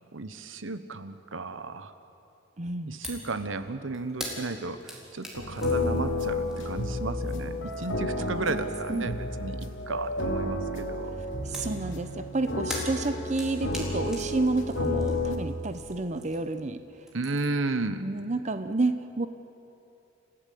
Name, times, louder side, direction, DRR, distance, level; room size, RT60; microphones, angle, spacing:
voice 1, 0.1-1.9 2.9-11.2 17.1-18.0, right 3 dB, 80° right, 11 dB, 1.1 m, -34 dB
voice 2, 2.6-3.0 8.2-9.1 11.2-17.1 18.0-19.3, right 2 dB, 35° right, 10 dB, 0.8 m, -30 dB
sound 1, 3.0-3.3 3.6-8.1 8.4-9.2 11.5-16.6 16.9-17.7, equal, 5° right, 3.9 m, -42 dB
sound 2, 5.4-15.4, left 2 dB, 75° left, 2.6 m, -31 dB
29.5 x 15.5 x 8.5 m, 2.8 s
head